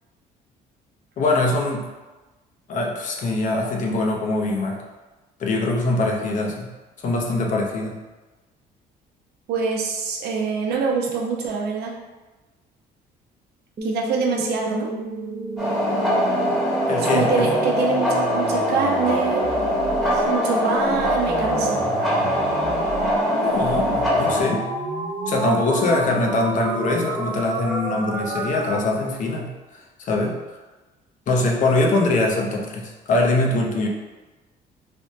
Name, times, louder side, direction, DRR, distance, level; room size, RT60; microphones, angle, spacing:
voice 1, 1.2-1.8 2.7-4.8 5.4-6.7 7.0-8.0 16.9-17.5 23.3-24.6 25.3-30.4 31.3-33.9, left 2 dB, 50° left, 0 dB, 0.6 m, -23 dB
voice 2, 9.5-11.9 13.8-14.9 17.1-19.5 20.1-21.8, right 5 dB, 75° right, -1 dB, 0.6 m, -24 dB
sound 1, 13.8-28.8, right 2 dB, 30° right, 0.4 m, -30 dB
sound 2, 15.6-24.4, left 1 dB, ahead, 1.0 m, -23 dB
3.4 x 2.2 x 2.6 m, 1.2 s
cardioid pair, 110°, 17 cm